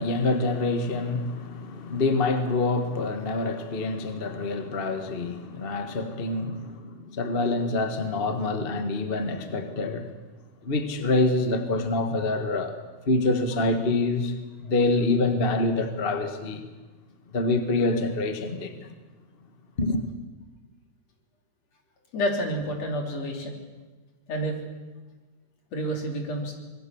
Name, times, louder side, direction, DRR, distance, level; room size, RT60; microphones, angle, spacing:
voice 1, 0.0-10.1 10.6-12.7 13.1-16.6 17.3-18.9 19.8-20.1, left 2 dB, 30° left, 1.1 m, -26 dB
voice 2, 22.1-23.5 24.3-24.6 25.7-26.5, equal, 55° left, 4.4 m, -29 dB
25.5 x 20.5 x 7.1 m
omnidirectional pair, 3.5 m